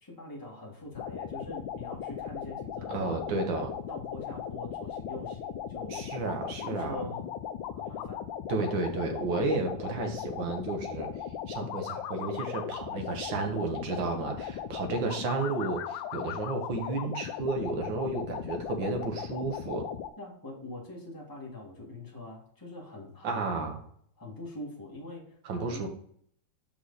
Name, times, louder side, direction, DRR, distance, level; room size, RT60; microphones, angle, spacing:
voice 1, 0.0-3.2 3.9-6.1 6.6-7.2 7.7-8.2 20.2-23.5 24.2-25.8, left 2 dB, 10° left, -4 dB, 2.0 m, -43 dB
sound 1, 0.9-20.1, left 9 dB, 85° left, 1.3 m, -38 dB
voice 2, 2.9-3.8 5.9-7.0 8.5-11.1 11.5-19.9 23.2-23.8 25.5-25.9, right 3 dB, 85° right, 4 dB, 1.9 m, -32 dB
6.4 x 5.5 x 4.1 m, 0.63 s
omnidirectional pair, 2.0 m